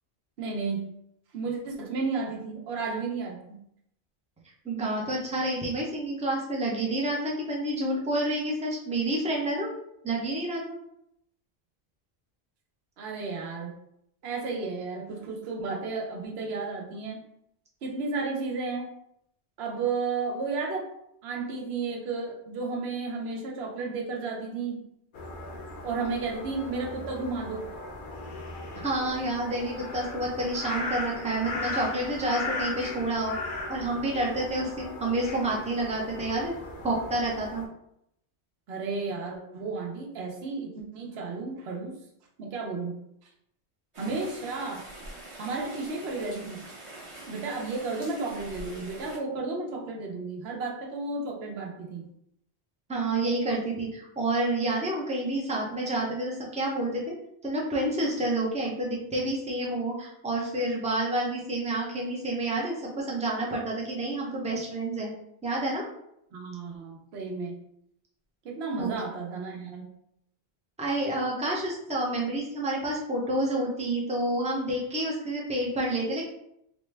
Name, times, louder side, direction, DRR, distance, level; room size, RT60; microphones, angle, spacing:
voice 1, 0.4-0.9 1.3-3.6 13.0-13.7 14.2-17.2 17.8-18.9 19.6-20.9 21.2-24.9 25.8-27.6 38.7-42.0 42.4-42.9 44.0-44.8 45.4-46.6 47.3-52.0 66.3-67.5 68.4-69.9, right 4 dB, 75° right, 0 dB, 0.9 m, -33 dB
voice 2, 4.6-9.7 10.0-10.8 28.7-33.3 33.7-36.5 36.8-37.6 52.9-57.1 57.4-65.1 65.4-65.9 68.8-68.9 70.8-76.3, right 1 dB, 10° right, -2 dB, 0.4 m, -29 dB
sound 1, 25.1-37.7, left 2 dB, 60° left, 0.6 m, -37 dB
Rain, 43.9-49.2, right 1 dB, 35° right, 0.8 m, -45 dB
3.2 x 2.2 x 3.2 m, 0.76 s
omnidirectional pair, 1.1 m